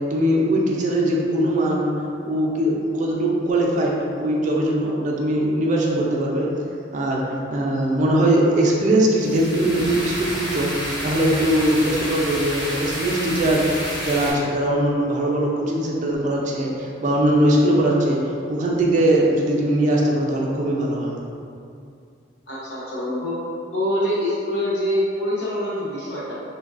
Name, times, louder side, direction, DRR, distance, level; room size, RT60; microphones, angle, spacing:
voice 1, 0.1-1.9 2.2-6.5 6.9-7.2 7.5-18.2 18.5-21.1, right 1 dB, 40° right, -2 dB, 0.3 m, -21 dB
sound 1, 9.2-14.3, equal, 25° left, 0.6 m, -29 dB
voice 2, 22.5-23.3 23.7-26.3, left 1 dB, 65° left, -8 dB, 0.8 m, -25 dB
3.3 x 2.2 x 2.4 m, 2.4 s
head